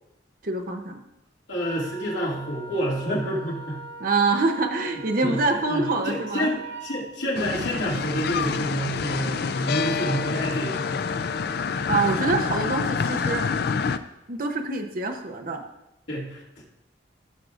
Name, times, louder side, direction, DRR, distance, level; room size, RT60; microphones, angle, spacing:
voice 1, 0.4-1.0 4.0-6.5 11.9-13.5 14.3-15.6, right 3 dB, 50° right, 5 dB, 0.7 m, -25 dB
voice 2, 1.5-3.8 5.2-5.4 5.7-6.6 6.8-10.9 16.1-16.6, equal, 85° left, -4 dB, 2.2 m, -28 dB
Wind instrument woodwind instrument, 1.6-7.1, right 4 dB, 90° right, 0.9 m, -41 dB
sound 1, 7.3-14.0, left 5 dB, 55° left, 0.4 m, -27 dB
15.5 x 6.3 x 2.5 m, 0.91 s
head